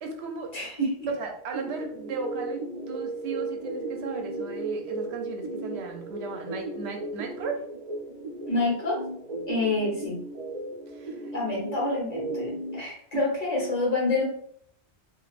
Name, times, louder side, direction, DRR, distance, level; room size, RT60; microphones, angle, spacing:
voice 1, 0.0-0.5 1.2-7.6 10.9-11.3 12.8-13.0, right 4 dB, 75° right, 3 dB, 0.8 m, -36 dB
voice 2, 0.5-1.1 8.5-9.0 9.5-10.2 11.3-14.2, left 2 dB, 40° left, -4 dB, 1.1 m, -27 dB
sound 1, 1.5-12.8, right 2 dB, 45° right, 0.5 m, -36 dB
3.2 x 2.3 x 2.4 m, 0.64 s
omnidirectional pair, 1.1 m